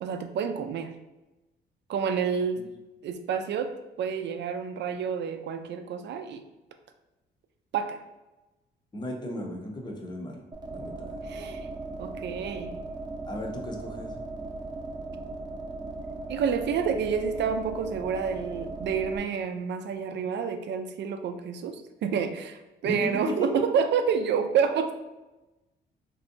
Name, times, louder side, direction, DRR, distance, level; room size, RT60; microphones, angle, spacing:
voice 1, 0.0-0.9 1.9-2.6 3.0-6.4 7.7-8.0 11.2-11.7 12.0-12.8 16.3-24.9, right 6 dB, 60° right, 8 dB, 0.4 m, -29 dB
voice 2, 8.9-10.4 10.7-11.2 13.3-14.2 22.8-23.6, left 1 dB, 20° left, 2 dB, 0.6 m, -35 dB
sound 1, 10.5-19.2, right 2 dB, 20° right, 0.6 m, -38 dB
3.2 x 2.6 x 2.6 m, 1.1 s
cardioid pair, 90°, 20 cm